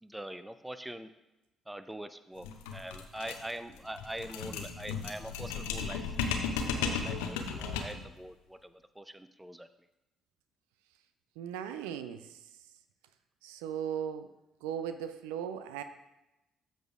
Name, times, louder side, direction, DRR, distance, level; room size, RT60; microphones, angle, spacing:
voice 1, 0.0-1.1 1.7-6.2 6.6-9.7, right 1 dB, 10° right, 11 dB, 0.6 m, -43 dB
sound 1, 2.4-8.1, left 5 dB, 70° left, 0.6 m, -35 dB
voice 2, 11.4-12.4 13.4-14.3 14.6-15.8, right 9 dB, 70° right, 10 dB, 0.4 m, -37 dB
13.0 x 6.3 x 2.4 m, 0.95 s
figure-of-eight pair, 45°, 0 cm